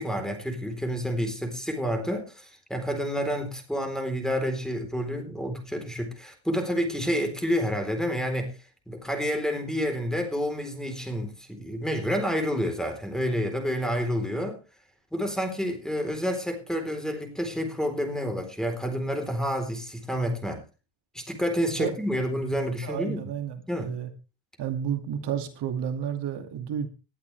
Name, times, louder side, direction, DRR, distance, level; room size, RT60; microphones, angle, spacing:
voice 1, 0.0-8.6 8.9-14.6 15.1-20.6 21.1-23.3 23.7-23.9, equal, ahead, 4.1 m, -29 dB
voice 2, 22.8-24.1 24.6-26.9, right 9 dB, 55° right, 2.5 m, -31 dB
20.0 x 11.5 x 3.5 m
cardioid pair, 145°, 47 cm